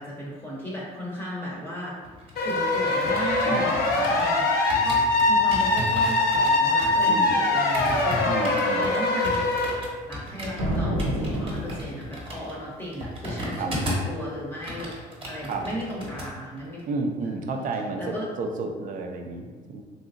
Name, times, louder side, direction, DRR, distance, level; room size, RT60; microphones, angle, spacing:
voice 1, 0.0-2.0 2.4-3.8 4.2-4.5 4.8-5.0 5.3-8.2 8.8-9.5 9.7-9.8 10.1-14.9 15.3-16.8 18.0-18.3, equal, 10° left, -6 dB, 0.7 m, -35 dB
sound 1, 2.0-4.3 4.7-14.2 14.5-16.3 16.6-16.8, equal, 35° right, 0.8 m, -35 dB
sound 2, 2.4-9.7, left 2 dB, 65° left, 0.7 m, -22 dB
voice 2, 3.4-4.2 7.1-7.3 8.3-8.9 13.5-13.7 15.5-15.6 16.9-19.8, right 3 dB, 55° right, 3 dB, 0.5 m, -31 dB
sound 3, 10.6-12.3, equal, 80° right, 0.8 m, -28 dB
3.2 x 2.8 x 2.6 m, 1.4 s
cardioid pair, 110°, 17 cm